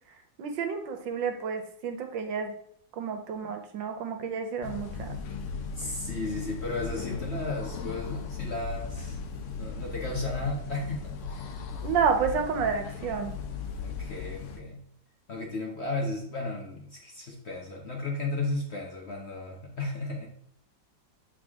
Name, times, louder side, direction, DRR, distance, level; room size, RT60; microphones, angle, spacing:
voice 1, 0.4-2.6 2.9-5.2 11.8-13.3, right 6 dB, 75° right, 6 dB, 1.5 m, -30 dB
sound 1, 4.6-14.6, left 5 dB, 70° left, 0.7 m, -37 dB
voice 2, 5.8-11.6 13.8-14.8 15.3-20.3, left 2 dB, 45° left, -1 dB, 1.0 m, -34 dB
7.8 x 3.6 x 3.5 m, 0.68 s
omnidirectional pair, 2.0 m